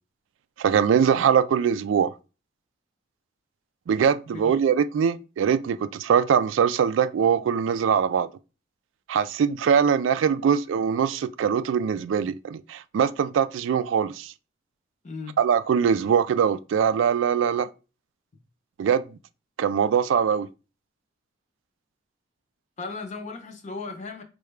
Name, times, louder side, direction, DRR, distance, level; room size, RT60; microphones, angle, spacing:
voice 1, 0.6-2.1 3.9-8.3 9.1-14.3 15.4-17.7 18.8-19.0 19.6-20.5, right 7 dB, 75° right, 0.3 m, -22 dB
voice 2, 15.0-15.4 22.8-24.2, left 4 dB, 40° left, 0.7 m, -36 dB
4.7 x 2.2 x 3.2 m
head